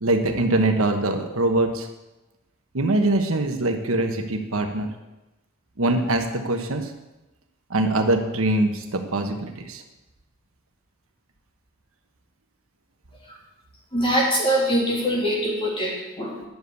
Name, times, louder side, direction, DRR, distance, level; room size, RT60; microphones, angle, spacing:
voice 1, 0.0-1.9 2.7-4.9 5.8-6.9 7.7-9.8, right 2 dB, 70° right, 5 dB, 1.3 m, -23 dB
voice 2, 13.9-16.5, equal, 25° left, -3 dB, 3.4 m, -23 dB
10.5 x 7.1 x 8.2 m, 1.0 s
head